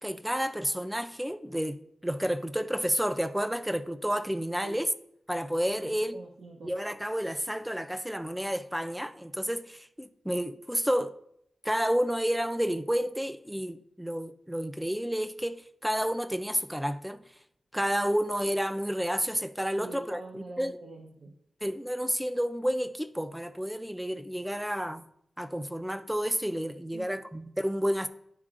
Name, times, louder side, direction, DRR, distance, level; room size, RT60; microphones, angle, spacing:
voice 1, 0.0-4.9 5.3-6.1 6.6-11.1 11.6-17.2 17.7-20.8 21.6-25.1 25.4-28.1, equal, 5° right, 0.3 m, -30 dB
voice 2, 5.8-6.7 19.7-21.3 26.9-27.2, right 3 dB, 75° right, 0.7 m, -45 dB
10.5 x 4.3 x 2.5 m
wide cardioid pair, 125°, 0 cm